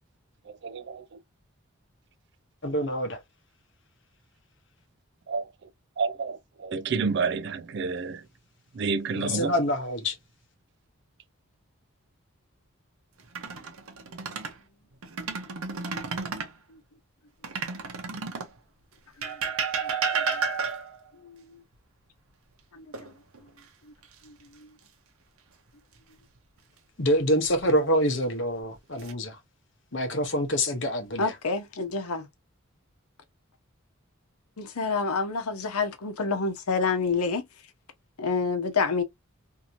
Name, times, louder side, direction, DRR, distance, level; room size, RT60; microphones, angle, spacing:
voice 1, 0.6-1.1 5.3-5.5 6.0-8.2 8.7-9.5, right 5 dB, 50° right, 0.4 m, -29 dB
voice 2, 2.6-3.2 9.1-10.2 27.0-29.4 29.9-31.3, equal, 55° left, 0.9 m, -26 dB
sound 1, 13.2-14.6 15.0-16.6 17.4-18.6 19.2-21.0 22.9-23.6 24.0-24.2 27.2-27.8 28.5-29.1, right 5 dB, 75° right, 0.8 m, -32 dB
voice 3, 19.8-20.4 21.1-21.6 22.7-22.9 24.2-24.7 31.2-32.3 34.6-37.5 38.2-39.0, left 4 dB, 90° left, 0.8 m, -29 dB
2.9 x 2.7 x 2.5 m
head